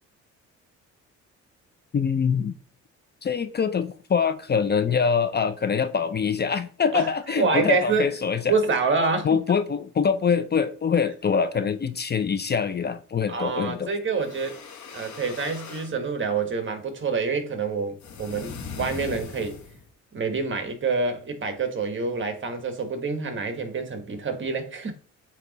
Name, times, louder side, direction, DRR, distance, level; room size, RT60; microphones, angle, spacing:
voice 1, 1.9-2.5 3.2-8.5 9.2-13.9, left 6 dB, 35° left, 0.5 m, -24 dB
voice 2, 7.4-8.1 8.5-9.3 13.3-14.6 14.9-19.6 20.1-24.9, right 4 dB, 40° right, 1.4 m, -27 dB
sound 1, 14.1-15.9 18.0-19.9, left 5 dB, 70° left, 1.6 m, -39 dB
8.1 x 2.9 x 4.1 m
cardioid pair, 90°, 30 cm